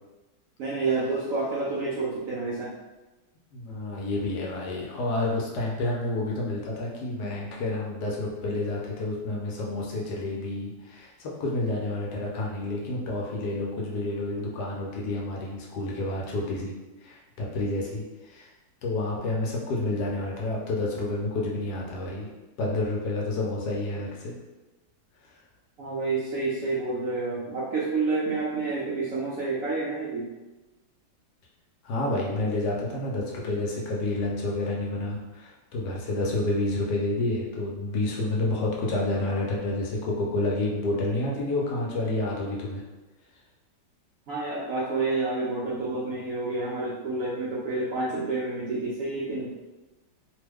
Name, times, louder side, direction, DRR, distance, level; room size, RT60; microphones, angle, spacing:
voice 1, 0.6-2.7 25.8-30.3 33.5-33.6 44.3-49.6, right 3 dB, 70° right, -6 dB, 0.8 m, -29 dB
voice 2, 3.5-16.7 17.0-18.5 18.8-22.3 22.6-24.4 31.8-42.8, left 2 dB, 70° left, -2 dB, 1.1 m, -29 dB
3.0 x 2.1 x 3.4 m, 1.1 s
omnidirectional pair, 1.9 m